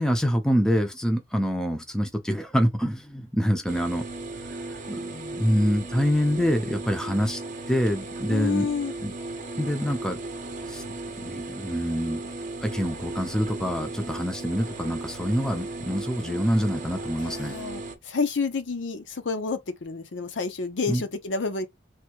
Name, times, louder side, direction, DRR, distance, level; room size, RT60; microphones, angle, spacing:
voice 1, 0.0-4.1 4.9-7.4 7.7-8.7 9.0-9.1 9.6-10.2 10.6-10.8 11.2-12.2 12.6-17.5 20.9-21.0, equal, 5° left, 0.5 m, -26 dB
sound 1, 3.7-18.0, right 2 dB, 40° right, 0.7 m, -36 dB
voice 2, 8.3-8.9 17.2-21.7, left 4 dB, 65° left, 0.6 m, -29 dB
3.5 x 2.7 x 2.9 m
head